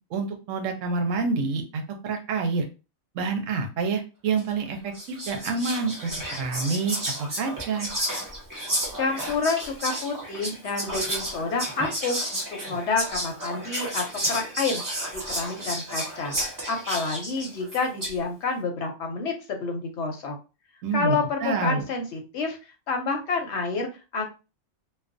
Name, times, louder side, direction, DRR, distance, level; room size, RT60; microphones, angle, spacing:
voice 1, 0.1-2.6 3.1-7.9 20.8-21.8, right 4 dB, 80° right, 4 dB, 1.0 m, -28 dB
Whispering, 4.4-4.6 4.9-18.2, right 1 dB, 20° right, 0.6 m, -32 dB
voice 2, 9.0-14.8 15.1-16.4 16.7-20.4 20.9-22.6 22.9-24.2, left 4 dB, 65° left, 4 dB, 0.8 m, -29 dB
2.3 x 2.2 x 2.5 m, 0.31 s
omnidirectional pair, 1.3 m